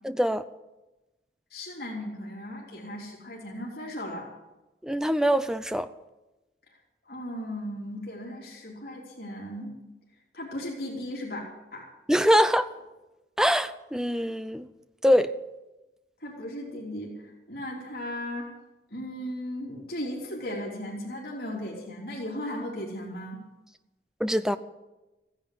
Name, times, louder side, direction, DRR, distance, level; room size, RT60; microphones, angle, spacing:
voice 1, 0.0-0.4 4.8-5.9 12.1-12.7 13.4-14.7 15.0-15.3 24.2-24.6, equal, 5° right, 0.5 m, -23 dB
voice 2, 1.5-4.3 7.0-9.7 10.3-11.4 11.7-11.9 16.2-18.5 18.9-23.4, left 1 dB, 55° left, 3.5 m, -36 dB
16.0 x 10.5 x 8.3 m
head